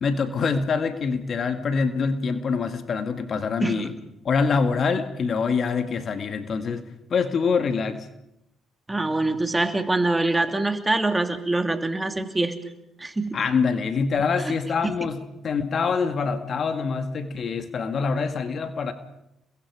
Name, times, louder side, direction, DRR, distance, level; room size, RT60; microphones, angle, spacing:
voice 1, 0.0-4.0 4.2-6.8 7.1-8.1 13.3-18.9, left 5 dB, 55° left, 8 dB, 2.0 m, -25 dB
voice 2, 8.9-12.6 13.0-13.4 14.8-14.9, right 2 dB, 20° right, 7 dB, 2.6 m, -24 dB
29.5 x 22.0 x 5.0 m, 0.83 s
supercardioid pair, 60°, 0 cm